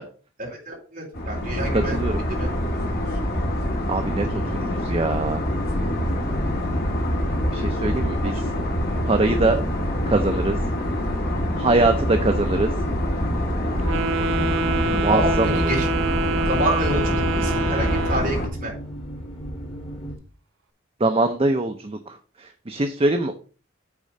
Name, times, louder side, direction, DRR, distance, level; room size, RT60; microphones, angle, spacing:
voice 1, 0.5-2.5 3.1-3.2 8.2-8.4 14.8-15.9 16.5-18.7, right 1 dB, 45° right, -1 dB, 3.4 m, -28 dB
sound 1, 1.1-18.5, left 1 dB, 50° left, 1.8 m, -25 dB
voice 2, 1.7-2.2 3.9-5.4 7.5-8.3 9.1-9.6 10.1-10.6 11.6-12.7 14.8-15.6 21.0-23.4, right 2 dB, 30° right, 7 dB, 0.6 m, -23 dB
sound 2, 4.0-20.2, equal, 30° left, 2.0 m, -35 dB
Wind instrument woodwind instrument, 13.8-18.4, right 3 dB, 85° right, 0.7 m, -26 dB
8.4 x 3.8 x 5.4 m, 0.38 s
head